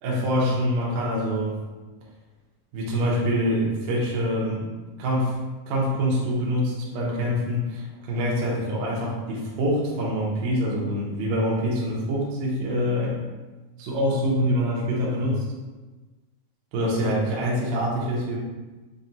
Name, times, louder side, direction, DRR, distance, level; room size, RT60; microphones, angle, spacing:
voice 1, 0.0-1.6 2.7-4.7 5.0-5.3 5.7-13.2 13.8-15.4 16.7-18.4, equal, 75° right, -5 dB, 2.0 m, -25 dB
6.4 x 2.2 x 2.8 m, 1.2 s
omnidirectional pair, 4.6 m